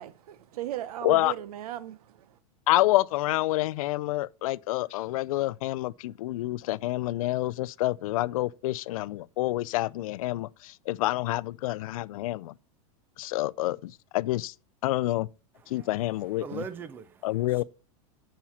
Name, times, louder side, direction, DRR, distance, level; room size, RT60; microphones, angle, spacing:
voice 1, 0.0-2.4 16.3-16.6, right 13 dB, 85° right, 0.7 m, -38 dB
voice 2, 2.7-12.5 13.2-14.5 14.8-15.3 15.7-16.6 17.2-17.6, left 17 dB, 70° left, 0.4 m, -28 dB
voice 3, 16.4-17.6, right 6 dB, 10° right, 0.3 m, -41 dB
7.2 x 5.6 x 5.7 m
supercardioid pair, 175°, 19 cm